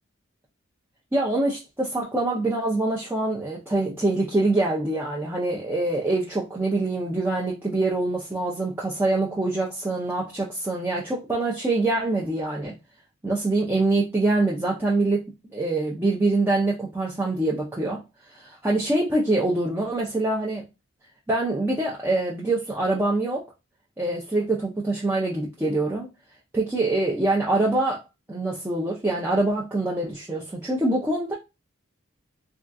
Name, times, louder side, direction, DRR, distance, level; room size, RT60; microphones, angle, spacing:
voice 1, 1.1-12.7 13.2-15.3 15.5-18.0 18.3-20.7 21.3-23.4 24.0-26.1 26.5-28.0 28.3-31.4, right 2 dB, 10° right, 0.4 m, -24 dB
3.5 x 2.3 x 2.5 m
head